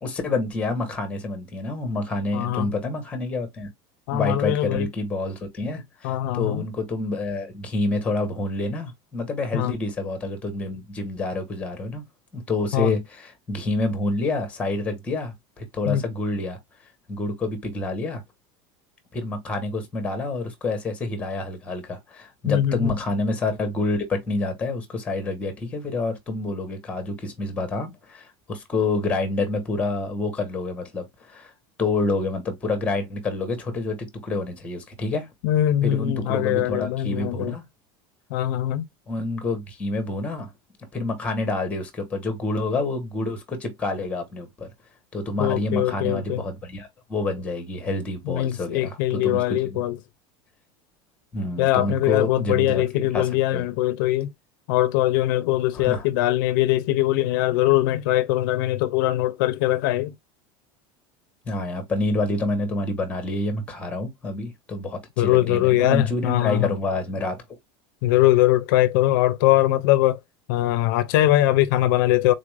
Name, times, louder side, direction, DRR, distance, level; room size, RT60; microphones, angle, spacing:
voice 1, 0.0-3.7 4.1-12.0 12.3-16.6 17.1-18.2 19.1-31.5 31.8-35.3 35.8-37.6 39.1-40.5 40.9-44.7 45.1-49.8 51.3-53.6 55.7-56.1 61.5-67.4, left 2 dB, 10° left, 0.9 m, -28 dB
voice 2, 2.3-2.7 4.1-4.9 6.0-6.6 9.5-9.7 12.7-12.9 15.8-16.0 22.5-22.9 35.4-37.6 38.3-38.9 45.4-46.4 48.3-50.0 51.6-54.3 54.7-60.1 65.2-66.7 68.0-70.2 70.5-72.3, left 14 dB, 70° left, 0.4 m, -21 dB
3.9 x 2.5 x 3.2 m
cardioid pair, 175°, 11 cm